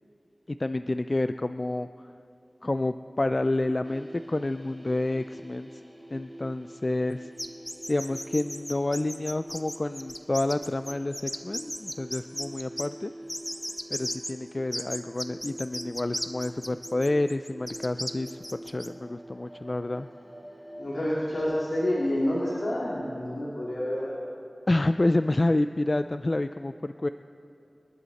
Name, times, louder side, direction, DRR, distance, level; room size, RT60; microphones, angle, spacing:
voice 1, 0.5-2.1 2.6-5.8 6.1-7.3 7.9-13.1 13.9-20.1 24.7-27.1, left 2 dB, 45° left, 10 dB, 0.3 m, -29 dB
sound 1, 3.8-23.2, right 1 dB, 10° right, 1.1 m, -46 dB
sound 2, 7.4-12.9 13.3-14.3 14.7-18.9, equal, 10° left, 0.8 m, -35 dB
voice 2, 20.8-24.1, left 1 dB, 80° left, -7 dB, 2.9 m, -28 dB
27.0 x 11.0 x 4.1 m, 2.6 s
wide cardioid pair, 60°, 0 cm